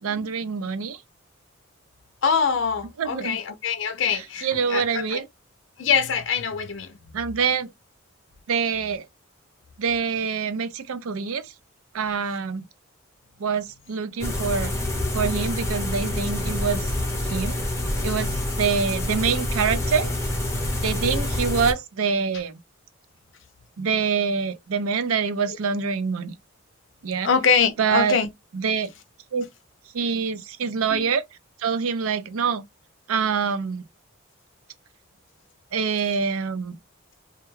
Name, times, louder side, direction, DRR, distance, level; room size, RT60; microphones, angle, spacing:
voice 1, 0.0-1.0 3.0-3.4 4.1-5.3 7.1-7.7 8.5-9.1 9.8-11.5 11.9-12.6 13.4-14.7 15.1-16.9 17.2-17.6 18.0-18.3 18.6-20.1 20.8-22.6 23.8-26.3 27.0-27.3 27.8-28.2 28.5-28.9 29.3-29.5 29.9-31.2 31.6-32.6 33.1-33.8 35.7-36.8, right 6 dB, 85° right, 0.5 m, -25 dB
voice 2, 2.2-5.2 5.8-6.9 27.2-28.3 30.9-31.0, left 6 dB, 60° left, 0.4 m, -24 dB
sound 1, 14.2-21.7, left 1 dB, 15° left, 0.6 m, -27 dB
2.3 x 2.2 x 3.0 m
head